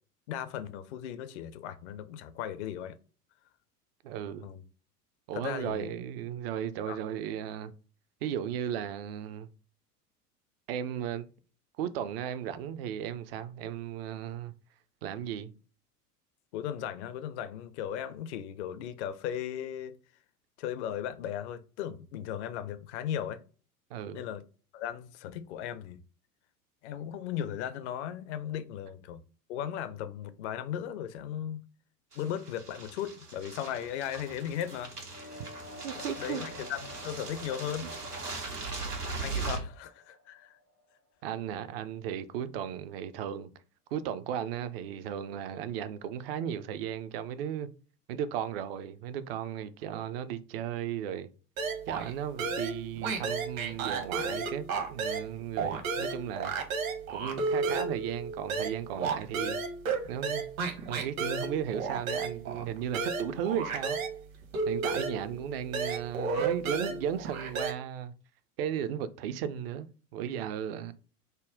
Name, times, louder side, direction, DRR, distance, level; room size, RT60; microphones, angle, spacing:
voice 1, 0.3-3.0 4.4-4.6 5.3-5.9 6.9-7.0 16.5-20.0 20.6-23.4 24.1-24.4 24.7-26.0 26.8-29.2 29.5-31.6 32.1-34.9 36.0-37.9 39.2-40.6, left 10 dB, 50° left, 0.5 m, -37 dB
voice 2, 4.0-4.5 5.3-7.7 8.2-9.5 10.7-11.3 11.8-14.5 15.0-15.5 23.9-24.2 35.8-36.7 41.2-43.5 43.9-47.7 48.1-51.3 51.9-56.6 57.1-59.6 60.1-60.5 60.9-64.0 64.7-68.1 68.6-70.9, right 9 dB, 40° right, 0.4 m, -35 dB
sound 1, 32.1-39.6, right 4 dB, 85° right, 1.0 m, -39 dB
sound 2, 35.1-41.0, left 2 dB, 80° left, 1.1 m, -49 dB
sound 3, 51.6-52.1 52.4-55.3 55.6-64.2 64.5-67.7, right 4 dB, 60° right, 1.1 m, -33 dB
5.1 x 2.1 x 3.6 m
figure-of-eight pair, 80°, 46 cm